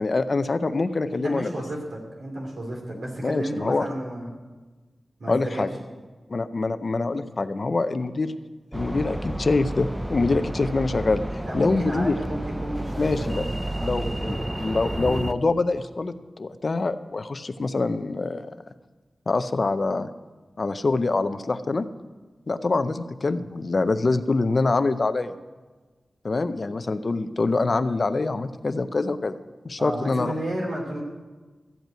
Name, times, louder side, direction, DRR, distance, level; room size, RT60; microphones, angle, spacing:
voice 1, 0.0-1.5 3.2-3.9 5.3-5.7 6.3-8.3 8.7-12.2 13.0-13.4 13.8-18.5 19.3-20.1 20.6-21.9 22.5-25.3 26.2-29.4 29.6-30.3, left 3 dB, 50° left, 12 dB, 0.5 m, -25 dB
voice 2, 1.1-4.3 5.2-5.6 11.4-14.3 29.8-31.0, right 1 dB, 75° right, -1 dB, 3.0 m, -32 dB
sound 1, 8.7-15.3, right 1 dB, 10° right, 0.5 m, -31 dB
13.5 x 5.4 x 8.9 m, 1.3 s
wide cardioid pair, 105°, 0 cm